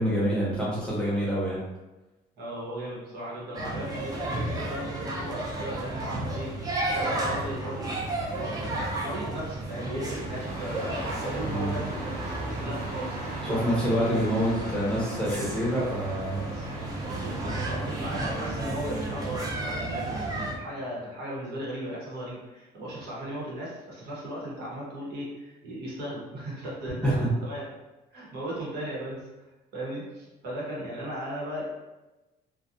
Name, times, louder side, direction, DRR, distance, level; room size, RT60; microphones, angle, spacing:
voice 1, 0.0-1.6 11.4-11.7 13.4-16.5 27.0-27.3, equal, 5° left, -7 dB, 0.9 m, -26 dB
voice 2, 2.4-13.6 16.5-27.7 28.1-29.2 29.7-31.6, right 1 dB, 70° right, -5 dB, 1.0 m, -37 dB
sound 1, 3.5-20.5, right 2 dB, 20° right, 0.5 m, -33 dB
Engine starting, 9.7-17.9, right 1 dB, 45° right, 1.1 m, -39 dB
2.4 x 2.2 x 2.7 m, 1.1 s
cardioid pair, 110°, 17 cm